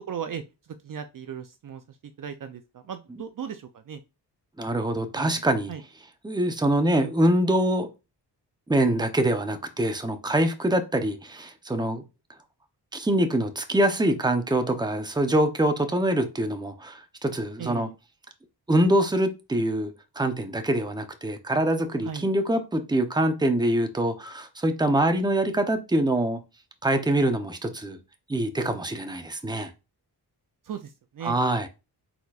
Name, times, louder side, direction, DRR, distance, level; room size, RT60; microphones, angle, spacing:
voice 1, 0.1-0.4 0.8-1.8 2.2-4.0 5.2-5.3 5.7-5.8 17.6-17.9 22.0-22.2 30.6-31.4, right 8 dB, 50° right, 0.5 m, -36 dB
voice 2, 4.6-5.7 6.2-7.9 8.7-12.0 12.9-17.9 18.7-26.4 26.8-28.0 28.3-29.7 31.2-31.7, right 1 dB, 10° right, 0.7 m, -24 dB
4.4 x 4.0 x 2.4 m
cardioid pair, 60°, 42 cm